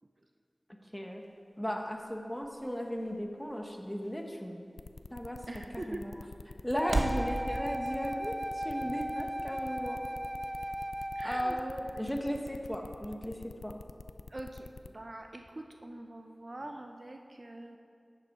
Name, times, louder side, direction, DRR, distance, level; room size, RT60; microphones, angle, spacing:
sound 1, 1.0-7.3, right 2 dB, 75° right, 1.1 m, -40 dB
voice 1, 1.6-4.6 5.1-5.4 5.9-6.1 6.6-10.0 11.2-13.8, equal, 10° left, 2 dB, 1.5 m, -36 dB
sound 2, 4.8-14.9, left 3 dB, 85° left, 0.4 m, -47 dB
voice 2, 5.5-6.0 8.8-9.0 11.1-11.6 11.9-12.1 14.3-17.8, right 1 dB, 50° right, 4 dB, 0.7 m, -44 dB
Wind instrument woodwind instrument, 6.8-11.7, equal, 10° right, 0.4 m, -37 dB
13.0 x 9.6 x 4.7 m, 2.4 s
wide cardioid pair, 50°, 0 cm